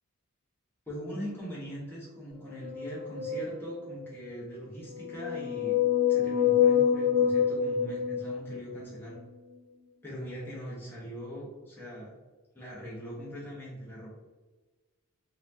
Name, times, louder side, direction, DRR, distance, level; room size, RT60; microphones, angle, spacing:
voice 1, 0.9-5.8 6.1-9.2 10.0-12.1 12.5-14.1, equal, 10° left, -7 dB, 1.0 m, -41 dB
sound 1, 2.5-4.1 4.9-8.8, left 8 dB, 40° right, 1.1 m, -27 dB
4.1 x 2.8 x 2.6 m, 1.3 s
head